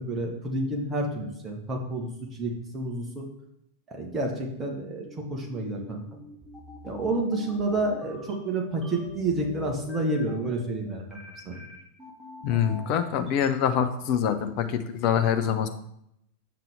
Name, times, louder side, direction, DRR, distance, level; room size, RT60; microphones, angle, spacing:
voice 1, 0.0-2.1 2.4-3.3 3.9-6.0 6.8-11.2 11.4-11.6, right 2 dB, 20° right, 0 dB, 1.5 m, -29 dB
sound 1, 5.1-13.5, left 3 dB, 5° right, 1.8 m, -45 dB
voice 2, 12.4-15.7, left 8 dB, 45° left, 8 dB, 0.7 m, -25 dB
8.4 x 5.9 x 3.6 m, 0.77 s
figure-of-eight pair, 90°, 0 cm